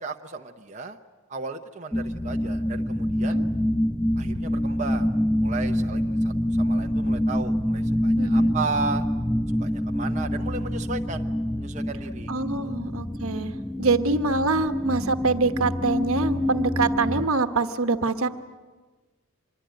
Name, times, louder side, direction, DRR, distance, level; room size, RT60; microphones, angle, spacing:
voice 1, 0.0-1.0 1.3-3.4 4.2-5.1 5.4-9.1 9.6-11.3 11.6-12.3 12.6-12.7, right 4 dB, 30° right, 3 dB, 0.9 m, -34 dB
sound 1, 1.9-17.3, equal, 5° left, 0.7 m, -26 dB
voice 2, 8.2-8.5 12.3-13.5 13.8-18.3, right 3 dB, 70° right, 8 dB, 1.2 m, -25 dB
25.5 x 22.0 x 9.2 m, 1.3 s
head